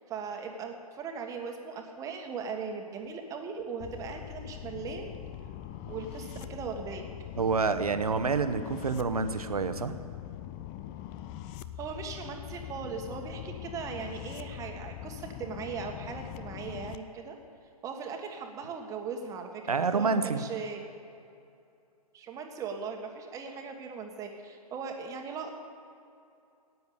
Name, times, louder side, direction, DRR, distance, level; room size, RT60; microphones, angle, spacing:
voice 1, 0.1-5.1 5.9-7.0 11.8-17.3 17.8-20.9 22.1-25.6, right 5 dB, 15° right, 4 dB, 1.5 m, -39 dB
sound 1, 3.8-17.0, left 12 dB, 20° left, 0.4 m, -42 dB
voice 2, 7.4-9.9 19.7-20.5, right 4 dB, 70° right, 10 dB, 1.1 m, -28 dB
16.0 x 9.5 x 8.8 m, 2.6 s
figure-of-eight pair, 120°, 20 cm